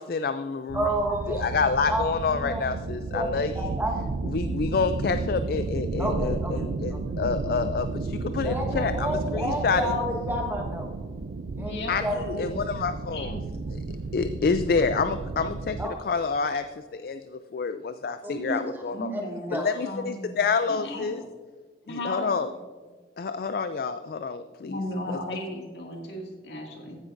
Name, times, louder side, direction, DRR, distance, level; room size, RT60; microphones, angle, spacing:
voice 1, 0.0-0.9 1.3-3.5 4.2-9.1 9.3-10.0 11.9-13.4 13.7-19.1 19.5-21.2 21.9-22.5 23.2-24.8 25.1-25.2, left 5 dB, 55° left, 10 dB, 0.3 m, -28 dB
voice 2, 0.7-2.0 2.3-2.6 3.1-4.2 6.0-7.0 8.4-11.1 11.6-12.2 15.8-16.0 18.2-18.6 19.1-19.2 19.5-19.8, right 1 dB, 10° right, 0 dB, 1.3 m, -31 dB
sound 1, 0.7-15.8, right 3 dB, 90° right, 0.5 m, -32 dB
voice 3, 11.6-12.6 13.1-13.6 18.3-19.6 19.8-20.4 20.7-21.3 21.9-22.6 24.6-27.0, left 1 dB, 75° left, 0 dB, 2.2 m, -35 dB
14.5 x 9.6 x 2.6 m, 1.5 s
head